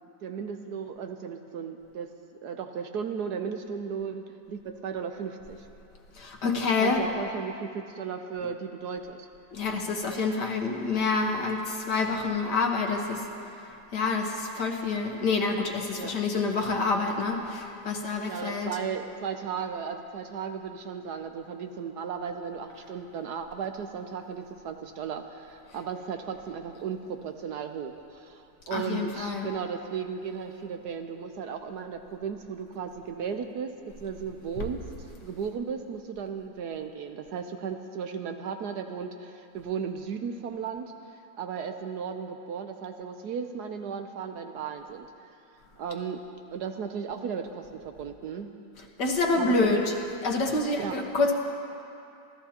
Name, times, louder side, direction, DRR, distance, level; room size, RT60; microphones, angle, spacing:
voice 1, 0.2-2.1 2.4-5.7 6.8-9.3 15.9-16.1 18.3-28.4 28.7-33.7 34.0-34.8 35.2-45.4 45.8-46.2 46.5-48.5 49.4-49.8 50.8-51.0, right 6 dB, 65° right, 6 dB, 1.2 m, -35 dB
voice 2, 6.2-7.0 9.5-13.2 13.9-18.8 28.7-29.5 34.6-34.7 48.8-51.3, left 3 dB, 65° left, 2 dB, 1.9 m, -27 dB
27.0 x 14.0 x 2.9 m, 2.6 s
omnidirectional pair, 2.0 m